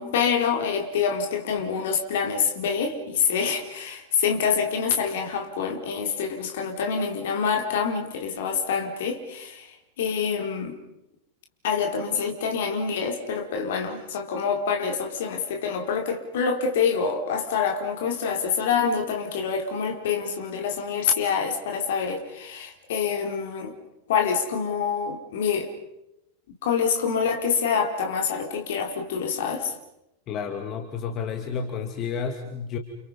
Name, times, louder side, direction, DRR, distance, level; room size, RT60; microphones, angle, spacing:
voice 1, 0.0-10.8 11.6-23.7 24.1-25.7 26.6-29.7, left 6 dB, 55° left, 4 dB, 4.2 m, -26 dB
voice 2, 30.3-32.8, left 6 dB, 35° left, 5 dB, 2.5 m, -31 dB
30.0 x 29.5 x 5.5 m, 0.88 s
figure-of-eight pair, 90°, 0 cm